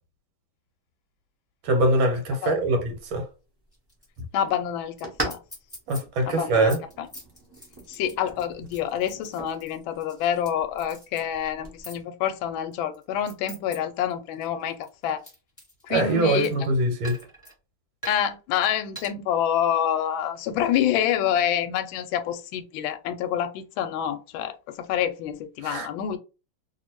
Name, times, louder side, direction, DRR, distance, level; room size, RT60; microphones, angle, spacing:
voice 1, 1.6-3.2 5.9-6.8 15.9-17.2 25.6-25.9, right 2 dB, 70° right, 1.6 m, -23 dB
sound 1, 2.8-11.8, right 1 dB, 25° right, 0.5 m, -41 dB
sound 2, 3.7-4.2 4.5-4.6 5.0-5.1 5.3-6.0 6.4-10.5 10.8-11.2 11.8-12.0 12.7-13.8 14.1-16.6 17.0-17.5 18.0-18.3 18.9-19.1, right 1 dB, 5° left, 1.6 m, -44 dB
voice 2, 4.3-5.4 6.3-6.7 7.0-7.1 7.9-15.2 15.9-16.5 18.1-26.2, left 9 dB, 75° left, 1.3 m, -27 dB
3.0 x 2.7 x 2.9 m
omnidirectional pair, 2.3 m